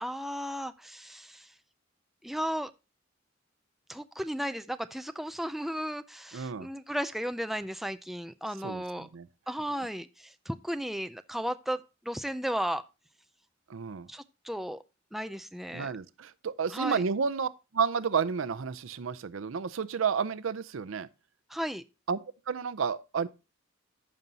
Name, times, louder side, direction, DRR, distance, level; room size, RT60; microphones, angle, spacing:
voice 1, 0.0-1.5 2.2-2.7 3.9-9.1 9.5-12.8 14.1-14.8 15.1-15.9 16.7-17.0 21.5-21.8, equal, ahead, 0.3 m, -35 dB
voice 2, 6.3-6.7 8.6-9.3 13.7-14.1 15.7-21.1 22.1-22.2 22.5-23.3, right 6 dB, 85° right, 0.5 m, -31 dB
14.5 x 5.4 x 2.8 m
head